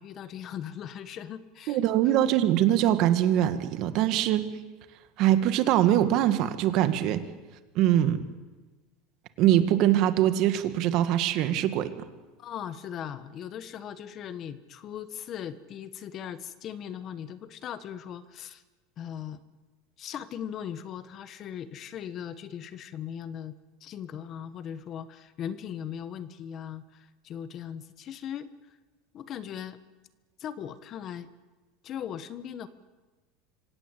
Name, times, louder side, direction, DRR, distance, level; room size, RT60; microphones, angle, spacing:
voice 1, 0.0-1.8 7.9-8.1 12.4-18.6 19.0-19.4 20.0-23.5 23.8-28.5 29.1-29.8 30.4-31.3 31.8-32.7, left 9 dB, 35° left, 13 dB, 1.2 m, -39 dB
voice 2, 1.7-4.5 5.2-7.2 7.8-8.2 9.4-11.9, right 12 dB, 50° right, 10 dB, 1.9 m, -23 dB
26.0 x 17.0 x 8.3 m, 1.3 s
supercardioid pair, 140°, 0 cm